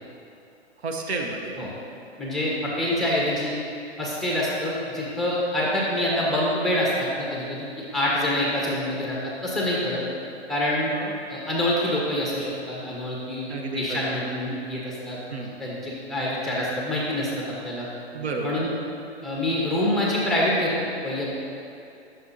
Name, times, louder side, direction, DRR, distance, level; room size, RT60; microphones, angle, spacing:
voice 1, 0.8-1.5 10.9-11.1 13.5-14.1 15.3-15.5 18.1-18.6, right 3 dB, 70° right, 1 dB, 1.0 m, -31 dB
voice 2, 2.2-3.6 4.0-10.0 10.5-10.9 11.3-15.2 15.6-17.9 18.4-18.7 19.2-21.5, left 1 dB, ahead, -5 dB, 1.1 m, -26 dB
9.4 x 6.5 x 2.7 m, 2.7 s
hypercardioid pair, 130°, 33 cm